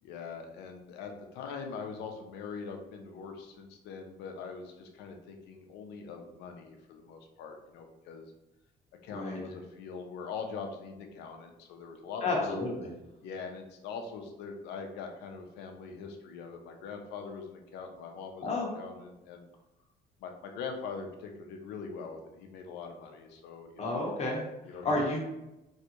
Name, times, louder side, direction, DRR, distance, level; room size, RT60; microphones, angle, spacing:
voice 1, 0.0-8.3 9.0-12.6 13.2-19.5 20.2-24.0 24.7-25.0, left 5 dB, 85° left, 4 dB, 0.6 m, -42 dB
voice 2, 9.1-9.4 12.2-12.9 18.4-18.7 23.8-24.5 24.8-25.2, left 2 dB, 40° left, -2 dB, 1.0 m, -30 dB
3.2 x 2.7 x 2.9 m, 0.95 s
cardioid pair, 110°, 17 cm